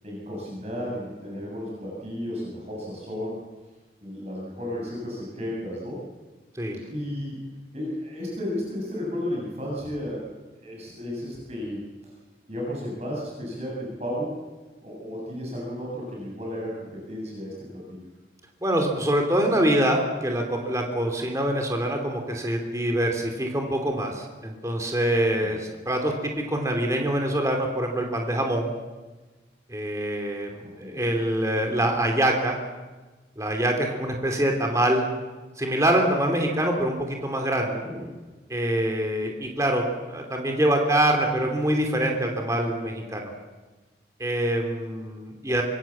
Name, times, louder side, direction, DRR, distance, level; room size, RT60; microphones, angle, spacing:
voice 1, 0.0-3.4 4.0-6.0 6.8-7.4 7.7-10.3 10.6-11.8 12.5-14.3 14.8-18.0 25.4-25.6 30.6-31.1 37.7-38.1, equal, 35° right, -3 dB, 7.5 m, -33 dB
voice 2, 18.6-28.7 29.7-32.6 33.4-35.0 35.6-37.8 38.5-43.3 44.2-45.6, right 1 dB, 15° right, 2 dB, 3.0 m, -25 dB
25.5 x 23.5 x 7.4 m, 1.2 s
head